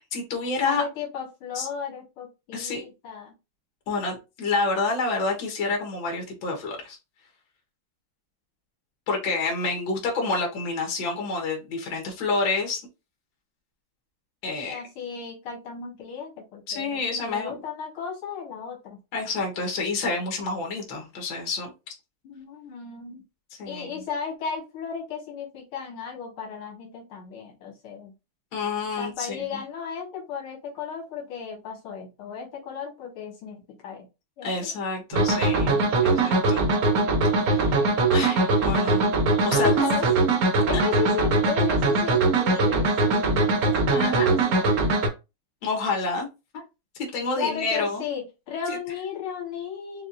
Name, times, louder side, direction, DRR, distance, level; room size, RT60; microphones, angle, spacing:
voice 1, 0.0-0.8 1.6-1.7 2.5-2.9 3.9-7.0 9.1-12.9 14.4-14.8 16.7-17.6 19.1-21.9 23.6-23.9 28.5-29.6 34.4-36.7 37.4-39.0 39.5-39.7 43.9-44.3 45.6-46.3 46.5-46.6 47.1-48.0 48.7-48.8, left 3 dB, 65° left, 0 dB, 1.9 m, -28 dB
voice 2, 0.6-3.3 14.6-19.0 22.2-23.2 23.7-28.1 29.0-34.1 34.4-34.7 39.4-40.1 40.7-44.9 47.4-50.1, left 7 dB, 80° left, 0 dB, 2.0 m, -35 dB
sound 1, 35.1-45.1, right 3 dB, 60° right, 0.9 m, -21 dB
5.5 x 2.4 x 2.5 m, 0.26 s
omnidirectional pair, 2.3 m